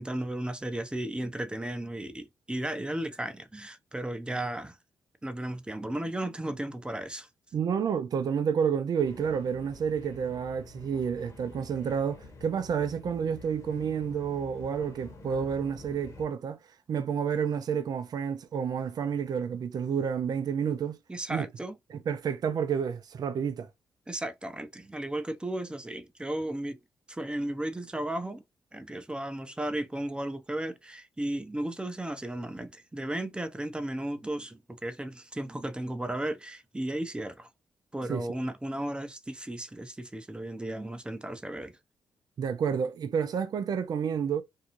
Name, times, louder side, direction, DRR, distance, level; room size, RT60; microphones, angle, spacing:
voice 1, 0.0-4.8 5.2-7.3 21.1-21.8 24.1-26.8 27.1-28.4 28.7-37.5 37.9-41.8, right 1 dB, 10° right, 0.7 m, -35 dB
voice 2, 7.5-16.6 16.9-21.0 21.3-21.5 21.9-23.7 38.1-38.3 42.4-44.4, right 7 dB, 55° right, 0.5 m, -30 dB
sound 1, 9.0-16.3, left 3 dB, 45° left, 1.2 m, -48 dB
2.7 x 2.3 x 2.9 m
supercardioid pair, 60°, 8 cm